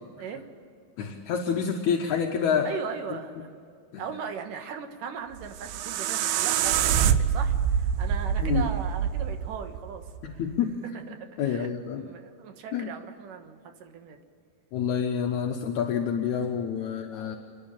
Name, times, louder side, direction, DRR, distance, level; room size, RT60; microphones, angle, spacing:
voice 1, 1.0-2.7 3.9-4.1 8.4-8.7 10.2-10.8 11.4-12.1 12.7-12.9 14.7-17.4, left 7 dB, 65° left, 2 dB, 2.0 m, -28 dB
voice 2, 2.6-3.5 4.0-10.0 10.3-10.4 11.1-11.7 12.0-14.2, right 7 dB, 65° right, 5 dB, 2.8 m, -38 dB
sound 1, 5.3-10.4, right 8 dB, 80° right, 2.4 m, -26 dB
30.0 x 10.5 x 8.8 m, 2.4 s
omnidirectional pair, 4.5 m